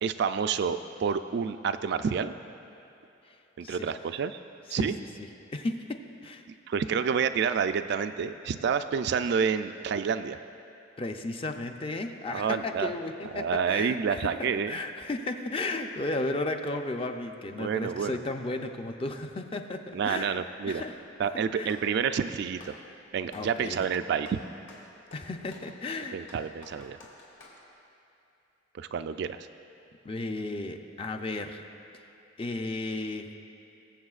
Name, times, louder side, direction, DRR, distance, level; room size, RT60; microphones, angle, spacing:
voice 1, 0.0-2.3 3.6-4.4 4.7-5.0 6.7-10.4 12.3-12.9 13.3-14.8 17.6-18.2 19.9-20.8 21.2-22.8 23.1-24.4 26.1-27.0 28.8-29.5, right 6 dB, 60° right, 10 dB, 0.3 m, -29 dB
voice 2, 5.5-6.5 11.0-20.4 20.7-21.0 21.5-21.7 23.3-23.9 25.1-26.2 30.0-31.6 32.4-33.3, left 2 dB, 30° left, 5 dB, 0.5 m, -34 dB
Clapping, 20.7-21.0 21.6-22.8 23.3-23.5 23.8-27.6, left 2 dB, 75° left, 2.4 m, -52 dB
21.5 x 7.5 x 2.4 m, 2.7 s
head